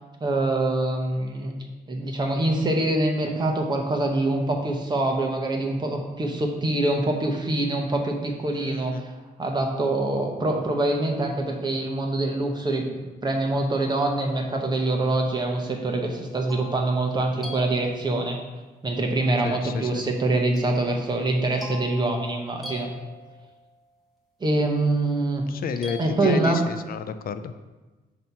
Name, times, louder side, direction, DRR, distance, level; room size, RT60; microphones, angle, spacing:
voice 1, 0.2-1.5 1.9-9.1 9.4-18.4 18.8-22.9 24.4-25.4 26.0-26.6, right 2 dB, 25° right, 2 dB, 1.0 m, -25 dB
voice 2, 8.5-9.0 19.4-20.1 25.5-27.5, left 6 dB, 60° left, 10 dB, 0.5 m, -31 dB
sound 1, 16.0-18.5 20.6-23.7 25.8-27.0, equal, ahead, 1.4 m, -42 dB
7.2 x 3.0 x 5.8 m, 1.2 s
cardioid pair, 130°, 17 cm